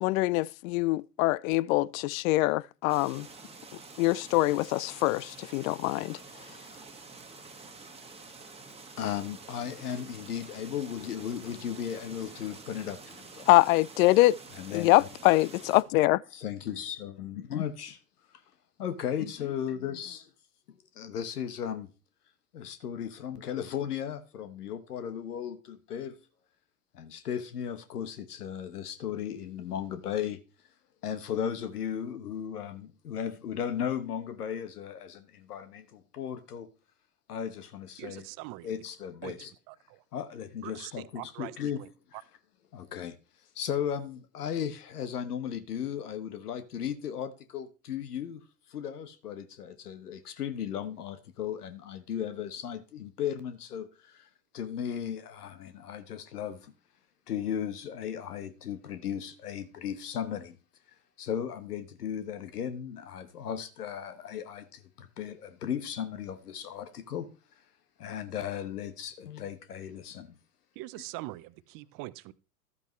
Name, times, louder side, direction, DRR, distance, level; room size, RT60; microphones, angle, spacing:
voice 1, 0.0-3.3 4.0-6.2 13.5-14.4 14.7-16.2, left 19 dB, 65° left, 0.5 m, -24 dB
sound 1, 2.9-15.8, right 4 dB, 15° right, 1.4 m, -48 dB
voice 2, 9.0-13.5 14.5-15.1 16.3-18.0 18.3-18.4 18.8-20.3 20.7-21.9 22.5-26.2 26.9-30.4 31.0-36.7 37.3-38.3 38.6-39.5 40.1-42.2 42.7-43.2 43.5-48.4 48.7-54.3 54.5-56.7 57.3-60.6 61.2-67.3 68.0-70.4, left 9 dB, 90° left, 1.1 m, -36 dB
voice 3, 38.0-38.7 39.2-39.3 39.7-40.0 40.6-41.5 41.8-41.9 70.8-72.3, right 19 dB, 45° right, 0.8 m, -42 dB
12.5 x 8.5 x 3.1 m
hypercardioid pair, 95°, 45 cm